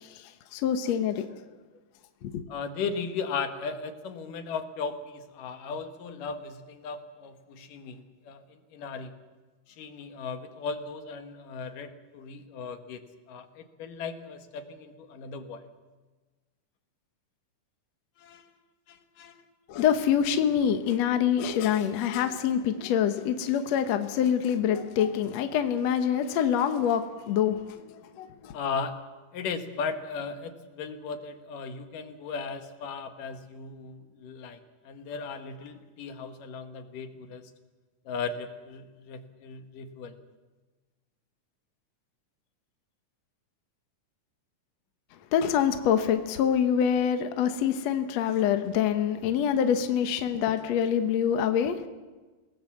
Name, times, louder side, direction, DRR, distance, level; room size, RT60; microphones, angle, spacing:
voice 1, 0.0-1.4 2.2-2.4 19.7-28.6 45.3-51.9, left 8 dB, 60° left, 8 dB, 2.1 m, -26 dB
voice 2, 2.5-9.2 9.7-13.0 13.3-15.7 18.2-18.5 18.9-19.4 28.5-29.0 29.3-37.5 38.1-40.2, left 5 dB, 80° left, 8 dB, 3.1 m, -37 dB
27.0 x 19.0 x 7.4 m, 1.3 s
omnidirectional pair, 3.8 m